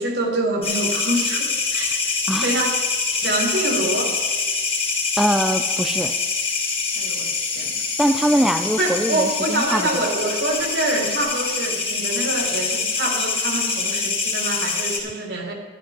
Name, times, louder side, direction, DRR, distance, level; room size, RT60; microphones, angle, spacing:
voice 1, 0.0-2.2 2.4-2.8 3.2-4.1 6.9-7.8 8.8-15.5, right 2 dB, 65° right, 2 dB, 1.8 m, -25 dB
sound 1, 0.6-15.0, left 4 dB, 35° left, 1.9 m, -25 dB
voice 2, 5.2-6.1 8.0-10.0, equal, ahead, 7 dB, 0.3 m, -22 dB
11.0 x 11.0 x 4.4 m, 1.4 s
head